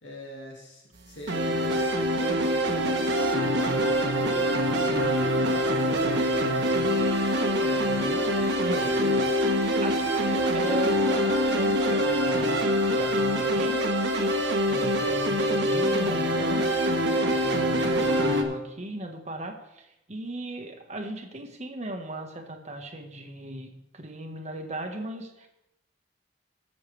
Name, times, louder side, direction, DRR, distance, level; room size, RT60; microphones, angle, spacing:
voice 1, 0.0-7.3 9.0-9.3, equal, 75° left, -2 dB, 2.4 m, -42 dB
sound 1, 1.3-18.4, equal, 70° right, 1.6 m, -24 dB
voice 2, 7.6-8.2 8.6-9.0 9.8-13.9 14.7-16.7 17.0-23.7 23.9-25.5, right 1 dB, 40° right, 4 dB, 1.5 m, -37 dB
21.0 x 6.9 x 3.4 m, 0.86 s
head